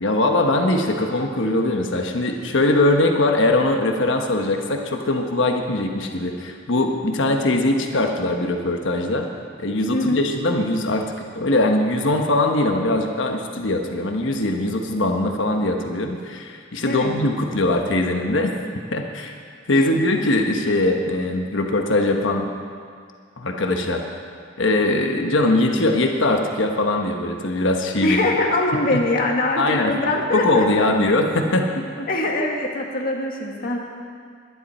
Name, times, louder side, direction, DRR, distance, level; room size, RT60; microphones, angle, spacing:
voice 1, 0.0-9.3 9.6-18.5 18.9-19.3 19.7-22.5 23.4-24.0 24.6-28.2 28.9-29.0 29.6-30.0 30.3-32.1, left 2 dB, 70° left, 3 dB, 1.2 m, -21 dB
voice 2, 9.9-10.2 16.9-17.1 19.7-19.9 28.0-31.1 32.1-33.8, left 2 dB, 50° left, 0 dB, 1.9 m, -23 dB
21.0 x 11.0 x 4.4 m, 2.1 s
head